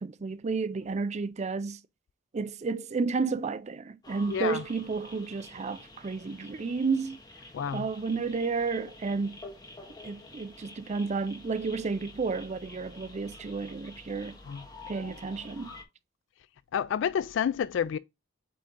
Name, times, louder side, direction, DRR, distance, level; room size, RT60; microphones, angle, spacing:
voice 1, 0.0-1.8 2.3-7.2 7.7-9.4 10.0-14.4 14.9-15.7, right 4 dB, 35° right, 0.4 m, -31 dB
sound 1, 4.0-15.8, left 2 dB, 20° left, 1.5 m, -49 dB
voice 2, 4.3-4.6 7.5-7.8 14.5-14.6 16.7-18.0, left 8 dB, 65° left, 0.3 m, -29 dB
8.4 x 3.7 x 3.7 m
head